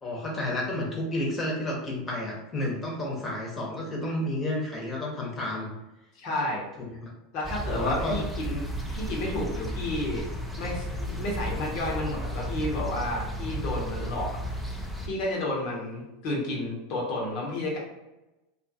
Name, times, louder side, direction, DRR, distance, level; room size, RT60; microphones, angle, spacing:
voice 1, 0.0-5.7 6.9-7.1 7.7-8.2, left 1 dB, 25° left, -2 dB, 1.1 m, -31 dB
voice 2, 6.1-6.6 7.3-8.6 8.9-10.3 10.6-14.4 15.0-17.8, left 1 dB, 55° left, -2 dB, 1.1 m, -31 dB
sound 1, 7.4-15.1, equal, ahead, 0.5 m, -33 dB
2.7 x 2.4 x 2.8 m, 0.98 s
hypercardioid pair, 90°, 0 cm